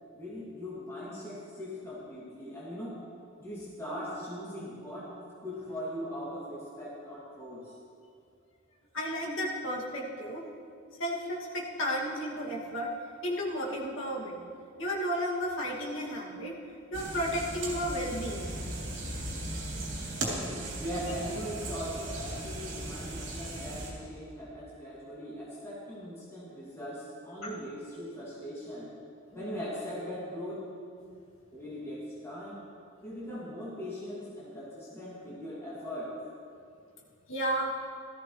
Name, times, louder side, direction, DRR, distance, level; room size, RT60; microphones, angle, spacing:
voice 1, 0.1-3.0 3.4-5.1 5.4-7.7 20.7-28.9 29.3-30.6 31.5-32.6 33.0-36.1, equal, 15° left, -9 dB, 2.7 m, -40 dB
voice 2, 8.9-10.4 11.0-12.9 13.2-14.4 14.8-16.5 16.9-18.5 27.4-27.5 31.0-31.2 37.3-37.7, equal, 75° left, -3 dB, 2.4 m, -33 dB
sound 1, 16.9-23.9, right 1 dB, 60° right, 3.3 m, -37 dB
17.0 x 14.0 x 3.3 m, 2.4 s
head